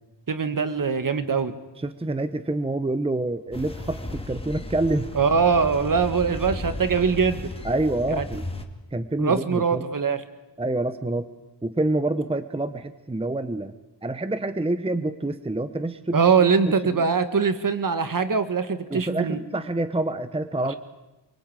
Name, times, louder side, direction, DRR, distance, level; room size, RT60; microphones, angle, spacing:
voice 1, 0.3-1.5 5.2-7.4 8.2-8.3 9.2-10.2 16.1-19.4, right 5 dB, 45° right, 11 dB, 1.9 m, -22 dB
voice 2, 1.8-5.1 7.6-8.5 8.9-9.9 10.6-11.3 11.6-13.7 14.0-16.2 16.7-17.0 18.9-20.7, right 2 dB, 15° right, 11 dB, 0.8 m, -27 dB
sound 1, 3.5-8.7, left 1 dB, 10° left, 2.2 m, -35 dB
26.0 x 24.0 x 9.0 m, 1.0 s
wide cardioid pair, 175°, 45 cm